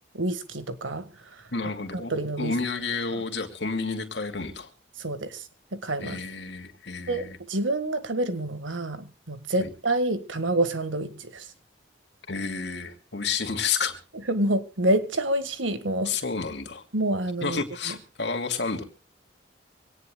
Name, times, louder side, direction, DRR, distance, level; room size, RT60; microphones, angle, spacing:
voice 1, 0.1-1.5 1.9-2.6 3.1-3.2 5.0-6.2 7.1-11.5 14.3-16.2 16.9-18.0, right 1 dB, 90° right, 1.6 m, -28 dB
voice 2, 1.5-4.7 6.0-7.4 9.6-9.7 12.3-14.0 16.0-16.8 17.4-18.8, left 4 dB, 65° left, 2.5 m, -30 dB
25.0 x 18.0 x 2.3 m
head